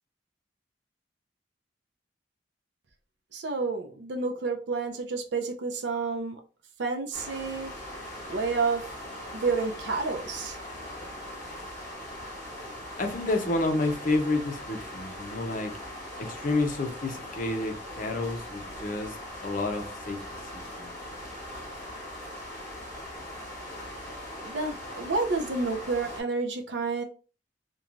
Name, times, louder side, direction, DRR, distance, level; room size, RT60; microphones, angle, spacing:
voice 1, 3.3-6.4 6.8-7.7 8.3-8.9 9.3-10.6 24.4-27.0, right 4 dB, 65° right, 0.5 m, -30 dB
sound 1, 7.1-26.2, left 1 dB, 20° left, 1.4 m, -40 dB
voice 2, 13.0-15.7 16.2-19.2 19.4-20.2 20.5-20.9, left 2 dB, 45° left, 0.5 m, -29 dB
3.0 x 2.2 x 2.4 m
head